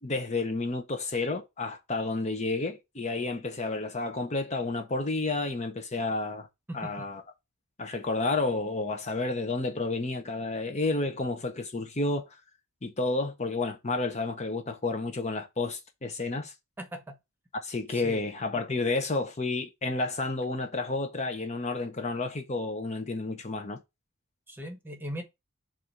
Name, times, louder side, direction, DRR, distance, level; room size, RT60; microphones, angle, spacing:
voice 1, 0.0-6.5 6.7-7.2 7.8-12.3 12.8-16.5 17.6-23.8, left 3 dB, 30° left, 0.7 m, -31 dB
voice 2, 6.7-7.1 16.8-17.2 17.9-18.2 24.5-25.2, equal, 10° right, 1.0 m, -39 dB
7.4 x 2.5 x 5.4 m
head